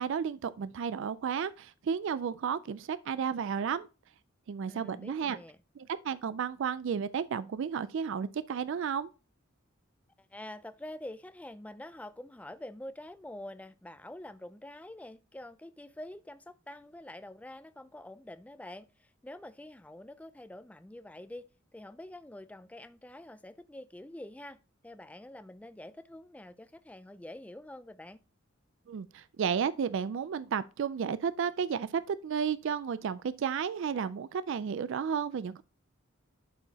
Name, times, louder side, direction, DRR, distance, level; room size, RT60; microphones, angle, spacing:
voice 1, 0.0-3.9 4.5-5.4 5.8-9.1 28.9-35.6, right 7 dB, 65° right, 0.4 m, -32 dB
voice 2, 4.7-5.6 10.2-28.2, left 1 dB, 5° left, 0.4 m, -46 dB
11.5 x 4.6 x 2.8 m
head